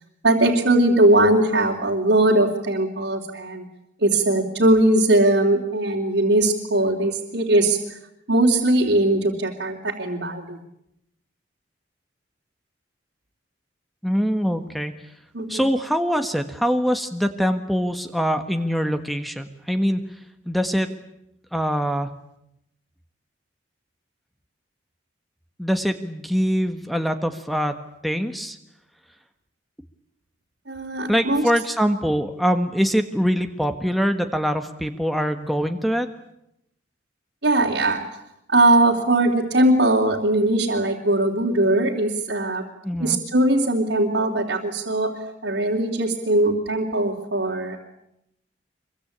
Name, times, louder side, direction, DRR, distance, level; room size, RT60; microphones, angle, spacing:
voice 1, 0.2-3.6 4.0-8.0 8.3-10.6 15.3-15.6 30.7-31.4 37.4-38.0 38.5-42.6 43.0-45.1 45.4-47.8, right 1 dB, 75° right, -3 dB, 3.4 m, -20 dB
voice 2, 14.0-14.9 15.5-20.0 20.5-20.9 21.5-22.1 25.6-27.8 28.0-28.6 31.1-36.1 42.8-43.2, equal, ahead, 7 dB, 1.5 m, -23 dB
25.5 x 23.5 x 8.8 m, 0.81 s
head